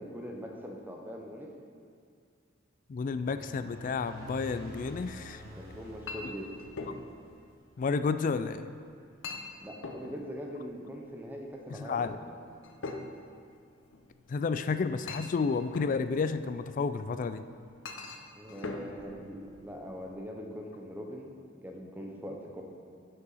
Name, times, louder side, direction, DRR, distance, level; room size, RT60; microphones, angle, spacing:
voice 1, 0.0-1.5 5.5-6.5 9.6-12.4 18.3-22.6, equal, 10° right, 1 dB, 0.8 m, -42 dB
voice 2, 2.9-5.4 7.8-8.7 11.7-12.2 14.3-17.4, left 4 dB, 45° left, 11 dB, 0.3 m, -31 dB
sound 1, 2.9-7.6, right 1 dB, 80° right, 1.7 m, -49 dB
Chink clink, 5.2-20.1, left 3 dB, 80° left, 0.7 m, -45 dB
10.5 x 5.6 x 4.1 m, 2.3 s
head